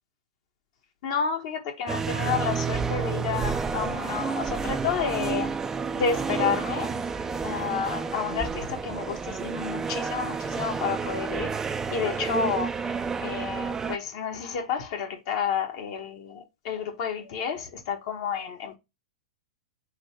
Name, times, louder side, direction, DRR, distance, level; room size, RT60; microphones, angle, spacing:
voice 1, 1.0-5.5 6.0-6.9 7.4-11.5 11.9-18.8, left 6 dB, 50° left, 1.1 m, -30 dB
sound 1, 1.9-14.0, right 5 dB, 15° right, 0.3 m, -30 dB
3.8 x 2.7 x 4.5 m
hypercardioid pair, 125°, 4 cm